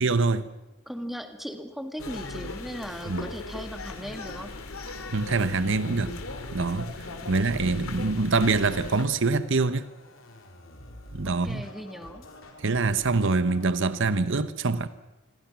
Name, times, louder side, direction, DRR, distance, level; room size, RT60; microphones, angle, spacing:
voice 1, 0.0-0.5 3.1-3.3 5.1-6.1 6.5-6.9 7.3-9.9 11.1-11.7 12.6-14.9, right 3 dB, 60° right, 1.0 m, -25 dB
voice 2, 0.9-4.6 7.2-7.4 11.2-12.3, equal, ahead, 1.8 m, -38 dB
sound 1, 2.0-9.0, left 2 dB, 85° left, 2.7 m, -38 dB
Scratching (performance technique), 8.8-13.7, left 1 dB, 65° left, 4.2 m, -48 dB
27.5 x 21.5 x 6.1 m
head